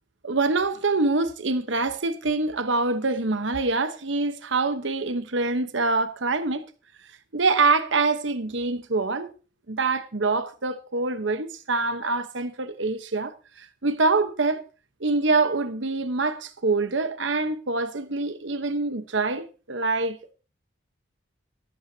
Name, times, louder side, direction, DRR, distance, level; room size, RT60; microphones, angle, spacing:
voice 1, 0.2-6.7 7.3-9.3 9.7-14.6 15.0-20.2, right 3 dB, 70° right, 1.1 m, -25 dB
14.0 x 13.5 x 2.9 m
head